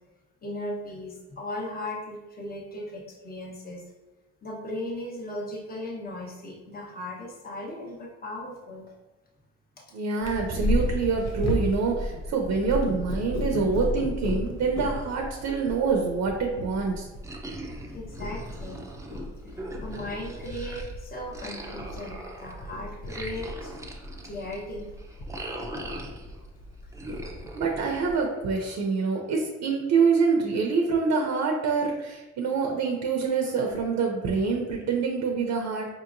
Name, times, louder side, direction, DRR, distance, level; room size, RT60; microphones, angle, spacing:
voice 1, 0.4-3.8 4.4-8.9 17.9-18.9 19.4-23.7 24.2-24.9, left 1 dB, 30° left, -3 dB, 1.0 m, -37 dB
voice 2, 9.9-17.1 27.6-35.9, right 5 dB, 70° right, 1 dB, 0.7 m, -26 dB
Purr, 10.2-28.1, left 1 dB, 60° left, 0.7 m, -34 dB
sound 1, 17.2-20.9 21.3-26.5 26.9-28.6, right 1 dB, 10° right, 0.5 m, -41 dB
4.9 x 2.9 x 2.5 m, 1.1 s
cardioid pair, 90°, 30 cm